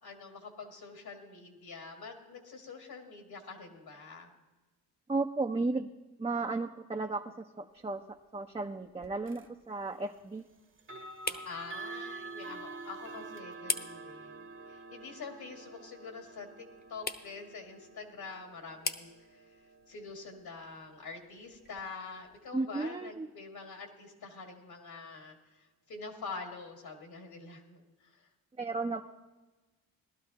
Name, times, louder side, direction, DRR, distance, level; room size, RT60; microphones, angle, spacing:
voice 1, 0.0-4.3 11.4-28.3, left 4 dB, 65° left, 2 dB, 2.1 m, -46 dB
voice 2, 5.1-5.9 6.2-10.4 11.3-11.4 22.5-23.3 28.6-29.0, right 3 dB, 15° right, 3 dB, 0.6 m, -34 dB
sound 1, 7.7-22.5, left 3 dB, 25° left, 0.9 m, -45 dB
sound 2, 9.3-9.5 10.8-21.7, right 3 dB, 30° right, 1.0 m, -48 dB
18.5 x 12.0 x 2.8 m, 1.2 s
cardioid pair, 65°, 40 cm